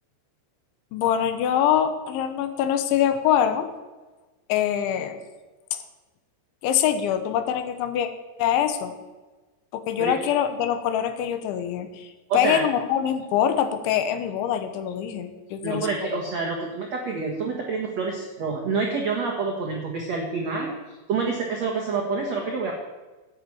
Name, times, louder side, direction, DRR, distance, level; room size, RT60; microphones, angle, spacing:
voice 1, 0.9-3.7 4.5-5.2 6.6-8.1 8.4-8.9 9.7-12.1 12.3-15.9, left 9 dB, 80° left, 9 dB, 3.3 m, -24 dB
voice 2, 12.3-12.6 15.6-22.7, right 4 dB, 90° right, 0 dB, 1.5 m, -27 dB
12.5 x 8.3 x 8.7 m, 1.2 s
omnidirectional pair, 5.5 m